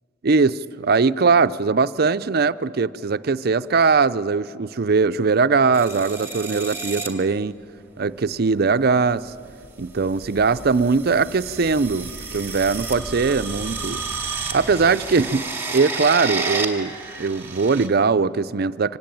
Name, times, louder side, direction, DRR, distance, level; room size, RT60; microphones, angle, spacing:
voice 1, 0.2-7.6 8.0-9.3 9.8-14.0 14.5-19.0, right 4 dB, 55° right, 0.5 m, -20 dB
sound 1, 5.7-7.1 8.3-8.6 9.6-17.9, right 3 dB, 10° right, 2.2 m, -31 dB
25.5 x 19.0 x 9.2 m
head